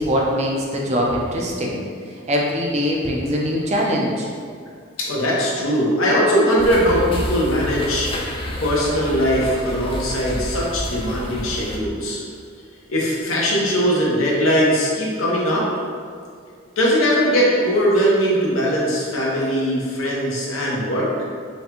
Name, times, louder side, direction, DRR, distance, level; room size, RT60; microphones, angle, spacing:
voice 1, 0.0-1.8 2.1-4.3, equal, 30° right, -2 dB, 0.5 m, -22 dB
voice 2, 5.0-8.1 8.6-12.2 12.9-15.7 16.8-21.1, equal, 85° left, -4 dB, 0.9 m, -20 dB
sound 1, 6.6-11.8, left 1 dB, 25° left, 0.3 m, -29 dB
5.5 x 2.2 x 2.9 m, 2.1 s
head